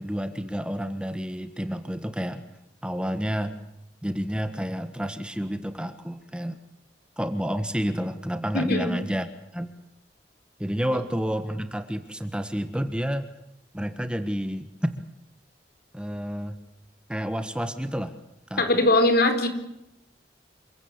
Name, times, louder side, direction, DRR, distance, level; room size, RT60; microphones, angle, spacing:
voice 1, 0.0-2.4 2.8-3.6 4.0-6.6 7.2-9.3 9.5-9.7 10.6-13.3 13.7-15.0 15.9-16.6 17.1-18.1 18.5-18.8, equal, 5° right, 9 dB, 1.5 m, -30 dB
voice 2, 8.5-8.9 18.6-19.5, left 2 dB, 60° left, 8 dB, 4.4 m, -21 dB
28.5 x 16.5 x 8.1 m, 0.84 s
head